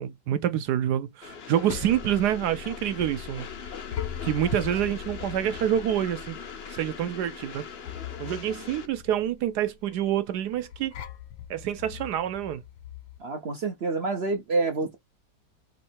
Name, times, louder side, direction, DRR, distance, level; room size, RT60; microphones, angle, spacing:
voice 1, 0.0-3.8 4.2-6.4 6.7-7.7 8.2-10.9 11.5-12.6, right 10 dB, 70° right, 1.1 m, -27 dB
Train, 1.2-8.9, left 6 dB, 50° left, 0.7 m, -41 dB
sound 1, 1.3-13.2, left 10 dB, 90° left, 1.6 m, -41 dB
voice 2, 13.2-15.0, right 3 dB, 55° right, 0.7 m, -27 dB
3.8 x 3.1 x 4.3 m
omnidirectional pair, 2.0 m